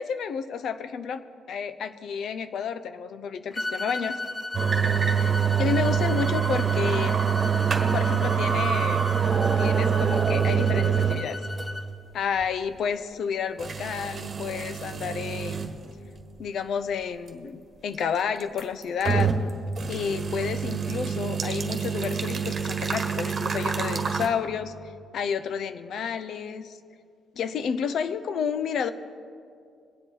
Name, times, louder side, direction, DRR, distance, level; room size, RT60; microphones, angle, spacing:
voice 1, 0.0-4.2 5.2-5.3 5.6-7.3 7.9-9.1 9.6-11.4 12.1-15.7 16.4-19.3 19.9-24.7 25.1-26.8 27.3-28.9, left 7 dB, 70° left, 12 dB, 0.7 m, -30 dB
sound 1, 3.5-11.9, left 1 dB, 15° left, 0.9 m, -35 dB
sound 2, 4.5-11.2 11.6-11.7 12.4-12.5 13.6-15.7 16.2-16.3 18.4-19.5 19.8-24.3, right 7 dB, 45° right, 1.5 m, -25 dB
22.0 x 7.8 x 4.8 m, 2.3 s
cardioid pair, 90°, 0 cm